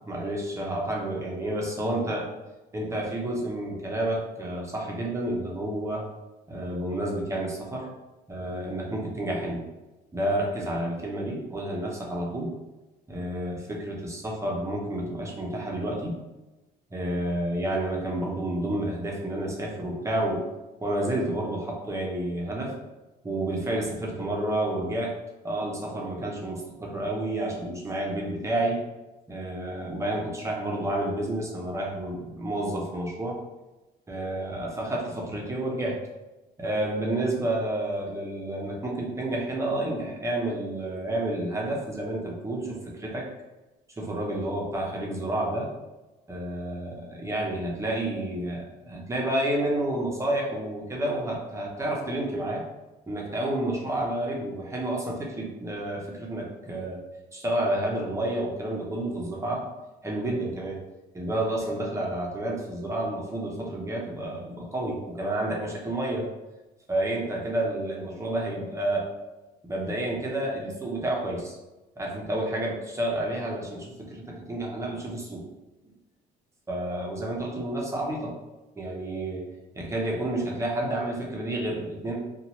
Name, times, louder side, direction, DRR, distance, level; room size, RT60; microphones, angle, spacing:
voice 1, 0.1-2.3 2.7-6.0 6.5-7.9 8.3-9.6 10.1-12.5 13.1-16.2 16.9-20.4 20.8-22.7 23.2-25.2 25.4-28.9 29.3-33.4 34.1-36.0 36.6-43.3 44.0-45.7 46.3-52.6 53.1-57.0 57.3-59.7 60.0-60.8 61.1-66.2 66.9-69.1 69.6-71.6 72.0-74.2 74.5-75.5 76.7-78.4 78.8-79.5 79.7-82.2, right 1 dB, 15° right, -2 dB, 0.6 m, -30 dB
2.7 x 2.2 x 2.9 m, 1.1 s
cardioid pair, 110°, 17 cm